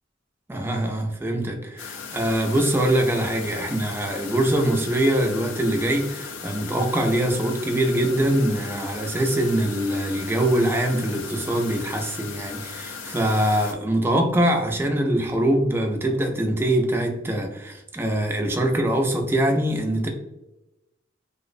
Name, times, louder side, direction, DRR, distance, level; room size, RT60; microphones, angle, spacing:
voice 1, 0.5-20.1, right 1 dB, 10° right, 3 dB, 0.3 m, -23 dB
sound 1, 1.8-13.7, left 6 dB, 75° left, 0.3 m, -37 dB
2.5 x 2.0 x 2.4 m, 0.92 s
head